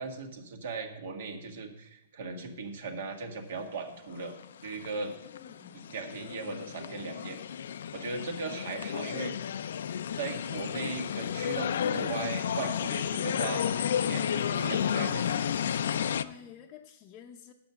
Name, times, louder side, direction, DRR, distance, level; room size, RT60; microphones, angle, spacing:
voice 1, 0.0-4.3 4.6-5.2 5.9-7.4 7.9-9.3 10.1-15.4, right 4 dB, 65° right, 4 dB, 1.8 m, -38 dB
sound 1, 4.1-16.2, left 8 dB, 70° left, 0.4 m, -32 dB
voice 2, 5.2-5.8 16.2-17.5, left 8 dB, 30° left, 1 dB, 0.7 m, -50 dB
9.3 x 6.1 x 6.8 m, 0.84 s
hypercardioid pair, 145°, 0 cm